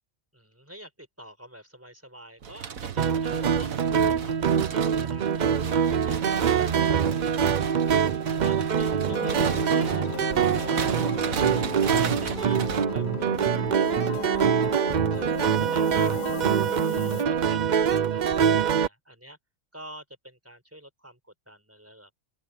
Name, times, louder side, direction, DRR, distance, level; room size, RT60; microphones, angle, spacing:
voice 1, 0.3-8.1 8.4-11.7 12.0-14.8 15.1-19.4 19.7-22.1, equal, 10° right, 5.3 m, -48 dB
sound 1, 2.4-12.9, right 7 dB, 80° right, 1.7 m, -35 dB
sound 2, 3.0-18.9, right 7 dB, 50° right, 0.5 m, -24 dB
sound 3, 9.1-17.2, left 13 dB, 90° left, 1.0 m, -37 dB
open air
omnidirectional pair, 1.4 m